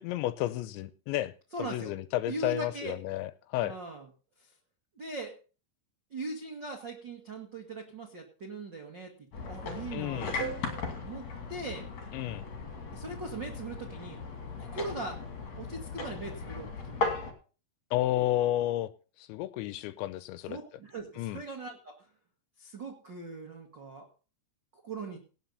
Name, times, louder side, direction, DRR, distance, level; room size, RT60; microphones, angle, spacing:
voice 1, 0.0-1.3 1.6-3.8 9.9-10.4 12.1-12.5 17.9-18.9 19.3-20.6 21.2-21.4, left 14 dB, 80° left, 13 dB, 2.8 m, -31 dB
voice 2, 1.5-1.9 2.2-3.0 3.6-4.1 5.0-5.3 6.1-9.1 9.4-10.2 10.9-11.2 11.5-11.8 12.9-14.2 14.6-15.2 15.6-17.0 20.5-21.9 22.6-24.1 24.7-25.2, right 3 dB, 65° right, 2 dB, 1.1 m, -40 dB
sound 1, 9.3-17.3, left 3 dB, 45° left, 3.1 m, -37 dB
18.0 x 6.7 x 5.5 m, 0.36 s
omnidirectional pair, 5.6 m